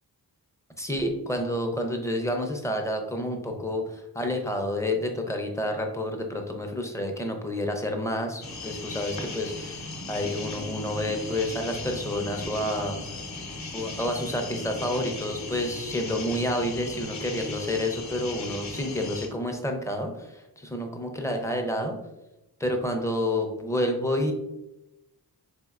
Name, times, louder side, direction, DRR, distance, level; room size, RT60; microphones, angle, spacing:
voice 1, 0.8-13.0 13.7-22.0 22.6-24.3, left 1 dB, 10° left, 3 dB, 0.5 m, -29 dB
sound 1, 8.4-19.3, left 3 dB, 50° left, 0.7 m, -37 dB
4.3 x 3.4 x 2.4 m, 0.94 s
wide cardioid pair, 105°, 37 cm